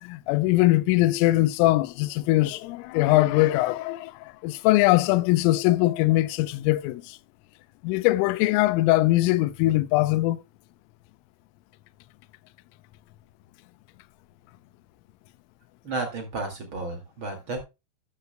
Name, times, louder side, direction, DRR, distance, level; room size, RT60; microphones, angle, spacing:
voice 1, 0.0-7.2 7.8-10.4, left 18 dB, 85° left, 3.2 m, -22 dB
voice 2, 15.8-17.6, right 2 dB, 50° right, 1.5 m, -32 dB
13.0 x 9.8 x 2.2 m
omnidirectional pair, 5.9 m